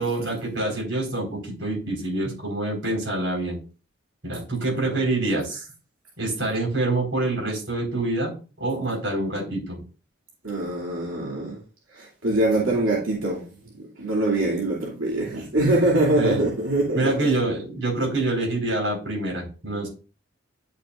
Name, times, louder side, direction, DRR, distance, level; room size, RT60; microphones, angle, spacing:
voice 1, 0.0-3.6 4.2-5.6 6.2-9.8 16.2-16.4 16.9-19.9, right 2 dB, 60° right, 4.7 m, -26 dB
voice 2, 4.7-5.1 10.4-11.6 11.9-13.5 14.0-17.3, right 1 dB, 90° right, 2.6 m, -24 dB
10.5 x 6.7 x 2.5 m
head